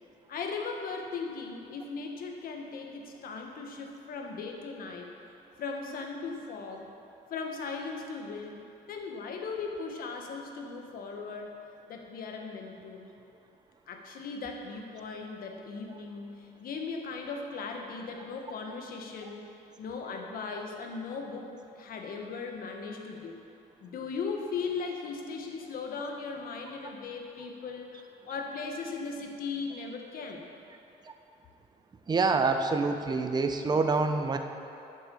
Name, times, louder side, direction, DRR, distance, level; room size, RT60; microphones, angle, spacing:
voice 1, 0.3-5.1 5.6-6.9 7.3-8.6 8.9-11.5 11.9-13.1 13.9-19.4 19.8-23.4 23.8-30.5, left 4 dB, 60° left, 2 dB, 1.4 m, -38 dB
voice 2, 32.1-34.4, right 4 dB, 25° right, 6 dB, 0.7 m, -26 dB
9.4 x 7.6 x 7.0 m, 2.7 s
cardioid pair, 110°, 17 cm